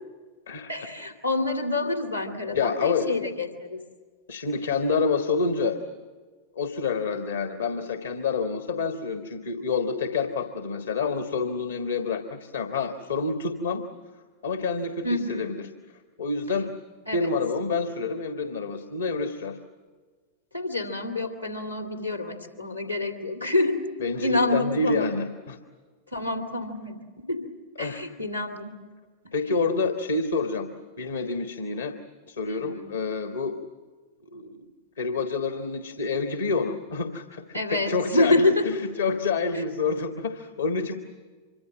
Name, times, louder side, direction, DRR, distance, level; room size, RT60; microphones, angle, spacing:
voice 1, 0.7-3.8 15.0-15.6 17.1-17.3 20.5-23.8 24.2-25.1 26.1-27.5 27.8-28.8 32.4-32.9 37.5-38.6 39.5-39.6 40.9-41.0, left 2 dB, 85° left, 5 dB, 2.6 m, -27 dB
voice 2, 2.5-3.2 4.3-5.8 6.5-13.8 14.4-15.7 16.2-16.7 17.1-19.6 24.0-25.6 27.8-28.0 29.3-30.7 31.0-31.9 32.3-33.6 34.2-34.7 35.0-40.9, left 4 dB, 70° left, 7 dB, 1.5 m, -28 dB
26.0 x 23.5 x 7.7 m, 1.4 s
figure-of-eight pair, 90°, 0 cm